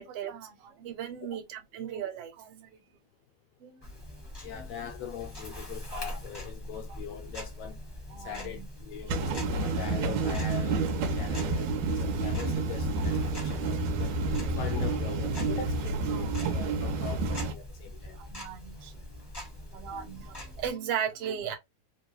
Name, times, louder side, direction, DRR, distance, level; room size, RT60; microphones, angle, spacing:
voice 1, 0.0-2.8 3.6-3.9 4.5-4.7 5.9-6.0 6.9-7.0 8.1-8.6 14.5-14.6 16.1-16.4 18.1-19.2 19.5-21.6, right 8 dB, 65° right, 1.7 m, -38 dB
Tick-tock, 3.8-20.7, left 1 dB, 20° left, 0.5 m, -43 dB
voice 2, 4.4-7.8 8.2-14.1 14.6-18.2, left 8 dB, 75° left, 1.6 m, -42 dB
sound 1, 9.1-17.5, right 3 dB, 80° right, 2.0 m, -29 dB
4.6 x 2.2 x 2.8 m
omnidirectional pair, 3.4 m